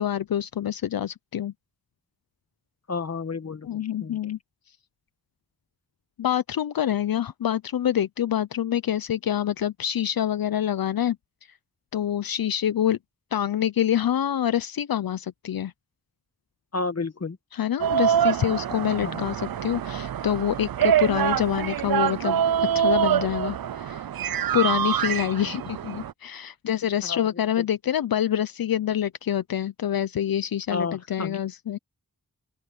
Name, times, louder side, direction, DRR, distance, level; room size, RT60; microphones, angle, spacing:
voice 1, 0.0-1.5 3.6-4.4 6.2-11.2 11.9-13.0 13.3-15.7 17.5-22.4 22.7-24.1 24.5-31.8, left 10 dB, 75° left, 0.5 m, -26 dB
voice 2, 2.9-4.2 16.7-17.4 19.0-19.2 27.0-27.3 30.7-31.4, left 4 dB, 45° left, 1.3 m, -31 dB
sound 1, 17.8-26.1, right 9 dB, 75° right, 0.5 m, -25 dB
open air
wide cardioid pair, 95°, 36 cm